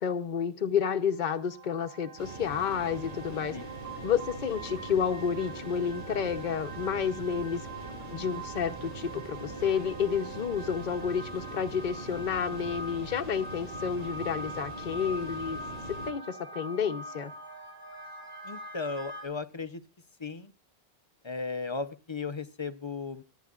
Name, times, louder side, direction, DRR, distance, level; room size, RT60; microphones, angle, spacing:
voice 1, 0.0-3.6 4.0-7.6 8.1-15.6 15.9-17.3, left 7 dB, 50° left, 7 dB, 1.0 m, -30 dB
sound 1, 1.1-19.3, right 2 dB, 70° right, 6.5 m, -43 dB
sound 2, 2.2-16.1, right 1 dB, 40° right, 2.0 m, -43 dB
voice 2, 18.4-19.8 20.2-20.5 21.2-23.2, left 4 dB, 30° left, 12 dB, 0.7 m, -36 dB
26.0 x 9.4 x 2.4 m, 0.29 s
omnidirectional pair, 1.0 m